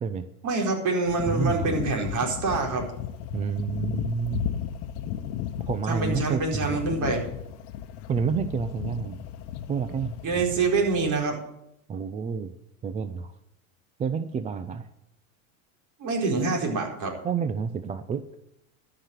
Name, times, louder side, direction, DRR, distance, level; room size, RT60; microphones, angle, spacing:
voice 1, 0.4-2.9 5.9-7.2 10.2-11.4 16.0-17.1, right 4 dB, 45° right, 0 dB, 4.4 m, -26 dB
sound 1, 1.1-11.2, left 10 dB, 50° left, 1.1 m, -34 dB
voice 2, 1.3-1.7 3.3-4.5 5.6-6.8 8.1-9.2 9.7-10.1 11.9-12.5 12.8-13.3 14.0-14.9 17.2-18.3, right 6 dB, 15° right, 11 dB, 0.5 m, -29 dB
13.0 x 5.9 x 9.0 m, 0.81 s
supercardioid pair, 120°, 41 cm